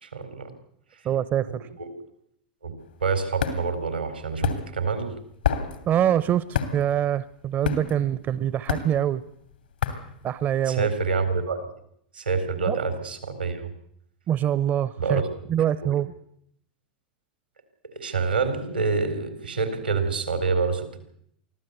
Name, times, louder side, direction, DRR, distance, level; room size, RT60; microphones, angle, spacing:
voice 1, 0.0-0.5 1.5-1.9 2.6-2.7 3.0-5.1 10.7-11.7 12.1-13.6 15.0-15.2 15.8-15.9 17.9-21.0, right 4 dB, 90° right, 10 dB, 4.0 m, -27 dB
voice 2, 1.0-1.7 5.9-9.2 10.2-10.9 12.7-12.8 14.3-15.2 15.5-16.1, right 10 dB, 35° right, 17 dB, 0.9 m, -24 dB
sound 1, 2.8-10.9, left 8 dB, 80° left, 2.8 m, -30 dB
24.0 x 15.5 x 8.2 m, 0.70 s
hypercardioid pair, 90°, 5 cm